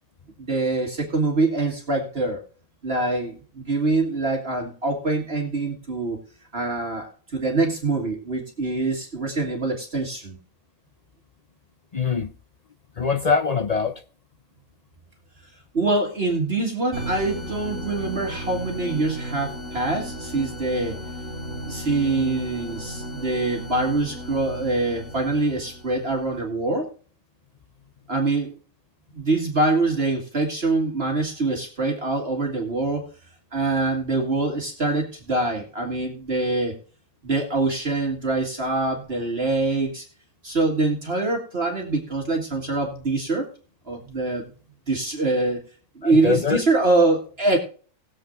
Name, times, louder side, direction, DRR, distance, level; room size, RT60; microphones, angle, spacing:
voice 1, 0.4-2.4 2.8-6.2 6.5-10.4 15.7-21.0 21.7-26.9 28.1-28.5 29.1-33.1 33.5-36.7 37.2-40.1 40.4-43.5 43.9-44.5 44.9-45.6 46.0-47.6, right 2 dB, 45° right, 2.0 m, -24 dB
voice 2, 11.9-12.3 13.0-14.0 46.0-46.6, left 5 dB, 55° left, 0.4 m, -23 dB
sound 1, 16.9-26.3, equal, 30° left, 6.5 m, -35 dB
20.0 x 7.5 x 2.5 m
omnidirectional pair, 1.5 m